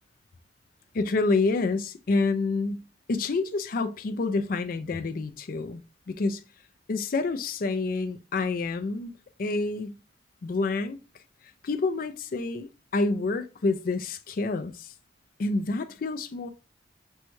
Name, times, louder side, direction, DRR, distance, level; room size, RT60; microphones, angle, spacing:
voice 1, 0.9-2.8 3.1-5.8 6.1-6.4 6.9-9.1 9.4-10.0 10.4-11.0 11.6-14.9 15.4-16.5, left 3 dB, 55° left, 0.4 m, -28 dB
6.2 x 2.3 x 3.0 m
head